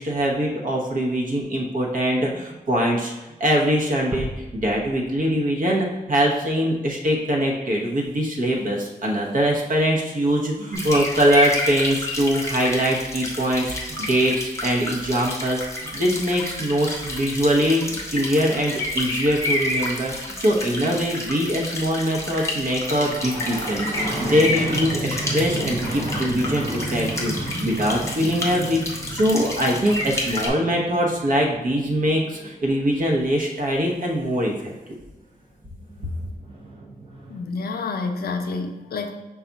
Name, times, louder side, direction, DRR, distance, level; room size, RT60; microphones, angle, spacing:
voice 1, 0.0-3.1 3.4-15.6 15.9-34.9, equal, 60° right, -1 dB, 0.9 m, -23 dB
sound 1, 4.1-6.0 6.4-6.5, right 1 dB, 15° right, 0.3 m, -36 dB
sound 2, 10.7-30.5, left 2 dB, 20° left, 0.8 m, -30 dB
sound 3, 22.8-33.2 35.3-35.4 35.6-37.4, right 1 dB, 35° right, 0.9 m, -33 dB
voice 2, 37.3-39.1, left 4 dB, 85° left, 5 dB, 0.5 m, -28 dB
5.6 x 2.4 x 4.0 m, 1.1 s
wide cardioid pair, 170°, 16 cm